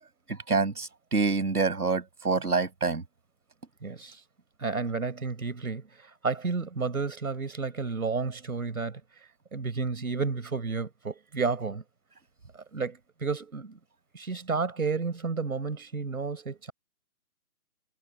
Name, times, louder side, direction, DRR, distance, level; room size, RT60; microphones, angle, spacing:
voice 1, 0.3-3.0, right 4 dB, 85° right, 7.6 m, -27 dB
voice 2, 3.8-4.2 4.6-9.0 9.5-11.8 12.5-13.8 14.1-16.7, right 4 dB, 70° right, 5.1 m, -31 dB
hypercardioid pair, 180°, 45 cm